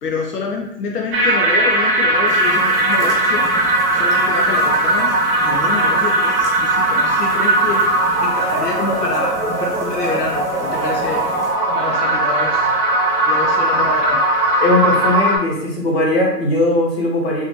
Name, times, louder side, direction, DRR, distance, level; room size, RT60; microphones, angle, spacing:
voice 1, 0.0-3.5 3.9-5.2 5.4-7.9 8.2-11.3 11.7-12.7 13.2-14.2, left 4 dB, 70° left, 0 dB, 0.7 m, -26 dB
sound 1, 1.1-15.4, right 1 dB, 35° right, 1.0 m, -18 dB
sound 2, 2.2-11.5, equal, ahead, 0.6 m, -36 dB
voice 2, 14.6-17.4, left 2 dB, 40° left, -3 dB, 1.1 m, -18 dB
4.0 x 2.5 x 3.1 m, 0.77 s
hypercardioid pair, 155°, 49 cm